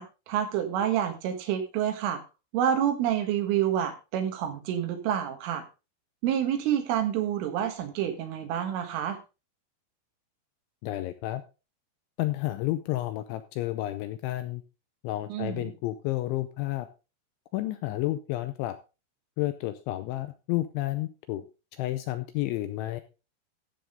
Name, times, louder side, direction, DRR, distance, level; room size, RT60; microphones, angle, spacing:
voice 1, 0.0-2.2 2.5-5.6 6.2-9.2 15.3-15.7, right 10 dB, 75° right, 6 dB, 4.0 m, -28 dB
voice 2, 10.8-11.4 12.2-14.6 15.0-16.9 17.5-18.8 19.4-21.5 21.8-23.0, left 16 dB, 85° left, 10 dB, 2.7 m, -31 dB
14.0 x 7.2 x 3.8 m, 0.30 s
omnidirectional pair, 5.9 m